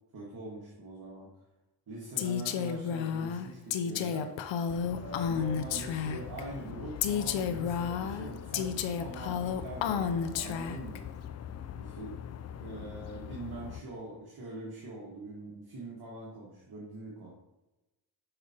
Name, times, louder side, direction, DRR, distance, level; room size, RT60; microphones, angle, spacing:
voice 1, 0.1-1.3 1.9-4.3 5.0-11.1 11.8-12.2 12.6-17.3, right 2 dB, 50° right, -6 dB, 1.7 m, -43 dB
Female speech woman speaking, 2.2-6.4 7.0-11.0, left 7 dB, 70° left, 0.7 m, -31 dB
urban environment with distant construction, 4.7-13.8, left 9 dB, 35° left, 0.4 m, -43 dB
6.6 x 5.6 x 2.9 m, 1.0 s
supercardioid pair, 60°, 47 cm